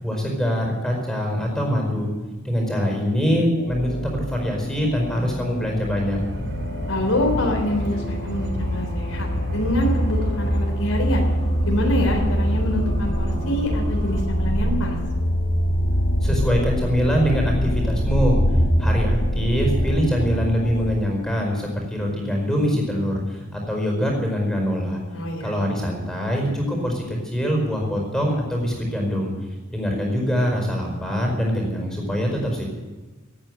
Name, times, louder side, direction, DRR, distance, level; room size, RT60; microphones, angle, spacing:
voice 1, 0.0-2.1 2.4-6.2 16.2-18.4 18.8-25.0 25.4-29.3 29.7-32.6, equal, 5° left, 1 dB, 4.8 m, -23 dB
sound 1, 3.6-20.9, equal, 65° left, 2.3 m, -24 dB
sound 2, 6.2-14.2, equal, 55° right, 3.5 m, -31 dB
voice 2, 6.9-11.2 11.7-15.0 25.1-25.5, left 1 dB, 85° left, 1 dB, 3.5 m, -25 dB
18.0 x 9.1 x 9.0 m, 1.3 s
head